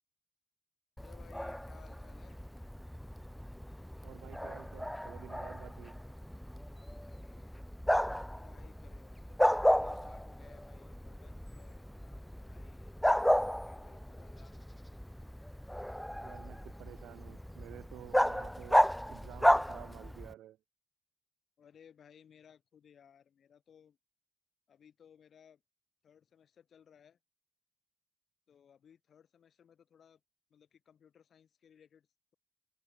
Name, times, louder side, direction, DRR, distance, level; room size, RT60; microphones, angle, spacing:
voice 1, 1.0-2.4 6.7-7.5 8.4-12.9 13.3-14.6 21.6-24.0 24.7-25.6 26.0-27.2 28.5-30.2 30.5-32.1, left 8 dB, 65° left, 5.7 m, -61 dB
Bark, 1.0-20.3, equal, 5° left, 0.3 m, -33 dB
voice 2, 4.0-6.0 16.2-18.8 19.1-20.6, right 13 dB, 90° right, 2.5 m, -51 dB
open air
cardioid pair, 75°, 0 cm